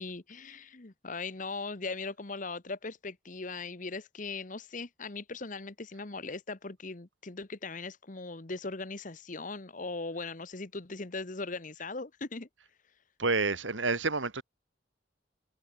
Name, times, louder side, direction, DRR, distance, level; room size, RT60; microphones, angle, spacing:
voice 1, 0.0-12.5, left 3 dB, 45° left, 1.2 m, -39 dB
voice 2, 13.2-14.4, right 3 dB, 90° right, 3.1 m, -29 dB
head